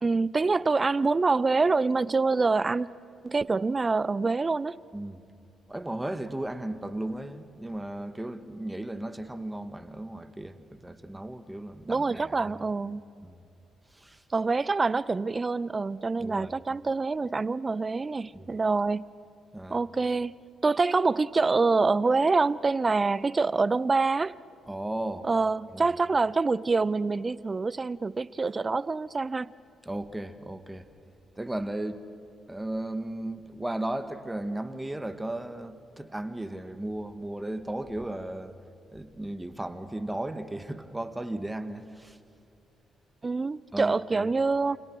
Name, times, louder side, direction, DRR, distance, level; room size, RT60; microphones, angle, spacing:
voice 1, 0.0-2.9 3.2-4.8 11.9-13.0 14.3-19.1 19.7-20.3 20.6-24.4 25.3-29.5 43.2-44.8, right 3 dB, 35° right, 0.7 m, -26 dB
voice 2, 5.7-12.6 13.2-13.4 13.9-14.2 16.2-16.5 18.3-18.5 19.5-19.8 24.7-25.3 25.7-25.8 29.8-30.8 31.4-32.0 32.5-38.6 38.9-42.2 43.7-44.3, right 1 dB, 10° right, 1.9 m, -35 dB
29.5 x 26.5 x 6.4 m
hypercardioid pair, 45°, 0 cm